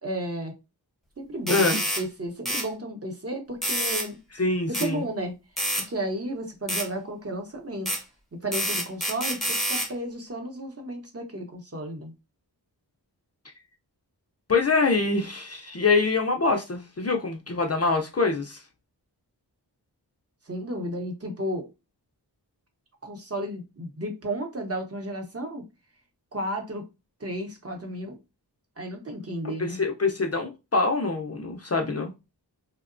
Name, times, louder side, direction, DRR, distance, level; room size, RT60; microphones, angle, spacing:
voice 1, 0.0-0.5 1.2-4.2 4.8-5.3 5.8-7.9 8.4-12.1 20.5-21.7 23.0-25.6 26.3-26.8 27.2-28.2 28.8-29.8, right 1 dB, 35° right, 0.8 m, -33 dB
voice 2, 1.5-1.8 4.4-5.0 14.5-18.6 29.6-32.1, left 3 dB, 40° left, 0.4 m, -25 dB
sound 1, 1.5-2.0 2.5-2.7 3.6-4.1 4.7-4.9 5.6-5.9 6.7-6.9 7.9-8.0 8.5-9.9, equal, ahead, 0.7 m, -27 dB
2.8 x 2.1 x 2.5 m
wide cardioid pair, 90°, 42 cm